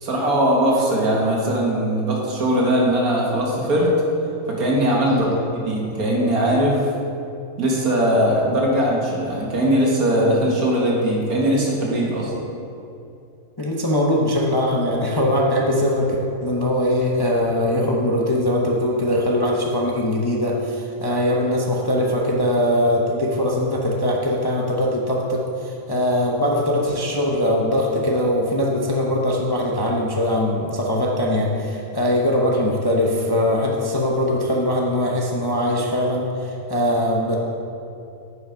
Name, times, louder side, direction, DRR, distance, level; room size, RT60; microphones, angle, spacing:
voice 1, 0.0-3.9 4.5-6.8 7.6-12.3, right 1 dB, 75° right, -3 dB, 2.0 m, -20 dB
voice 2, 5.0-5.3 8.5-8.6 13.6-37.4, left 1 dB, 25° left, -2 dB, 0.5 m, -21 dB
9.3 x 5.8 x 5.1 m, 2.7 s
omnidirectional pair, 1.6 m